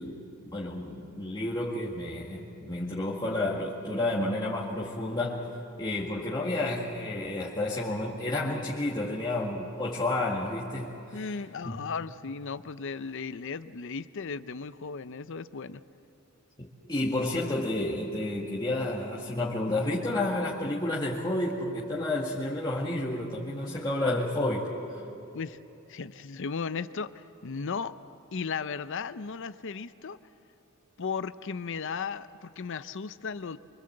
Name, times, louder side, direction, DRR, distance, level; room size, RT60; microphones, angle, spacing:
voice 1, 0.0-5.5 5.8-11.2 11.6-11.8 16.6-24.7, left 1 dB, 20° left, -6 dB, 2.0 m, -31 dB
voice 2, 11.1-15.8 25.3-25.6 25.9-28.0 28.3-30.2 31.0-33.6, left 5 dB, 60° left, 14 dB, 0.6 m, -36 dB
25.0 x 24.0 x 7.8 m, 3.0 s
head